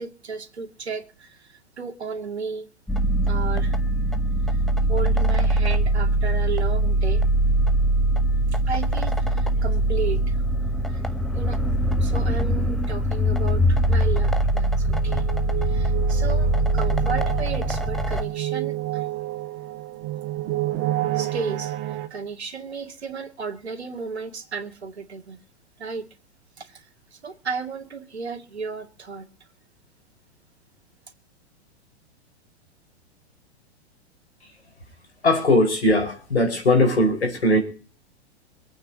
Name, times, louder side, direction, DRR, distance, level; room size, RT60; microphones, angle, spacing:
voice 1, 0.0-2.7 3.3-3.8 4.9-7.3 8.5-10.4 10.9-11.0 11.3-11.6 12.0-15.3 15.6-19.1 21.1-25.4 25.8-26.1 26.6-26.9 27.1-29.3, right 5 dB, 70° right, 5 dB, 2.3 m, -34 dB
sound 1, 2.9-18.2, right 1 dB, ahead, 1.0 m, -22 dB
sound 2, 9.3-9.4 9.6-9.7 10.0-10.1 14.3-22.1, right 15 dB, 35° right, 1.7 m, -30 dB
voice 2, 35.2-37.6, left 1 dB, 75° left, 6 dB, 5.2 m, -19 dB
26.0 x 9.1 x 2.9 m, 0.39 s
figure-of-eight pair, 100°, 34 cm